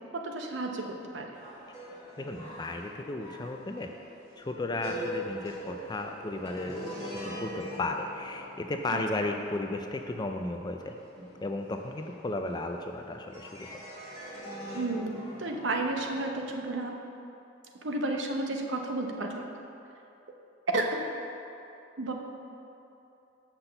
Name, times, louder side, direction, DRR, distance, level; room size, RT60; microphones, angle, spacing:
voice 1, 0.1-1.4 8.9-9.0 14.7-16.9 17.8-19.4 20.7-21.0 22.0-22.1, right 2 dB, 65° right, 2 dB, 0.8 m, -32 dB
sound 1, 1.3-12.9 13.3-16.7, equal, 15° right, 1.9 m, -43 dB
voice 2, 2.2-3.9 4.4-11.0 11.4-13.8, left 2 dB, 20° left, 4 dB, 0.4 m, -34 dB
6.0 x 5.9 x 6.6 m, 2.8 s
head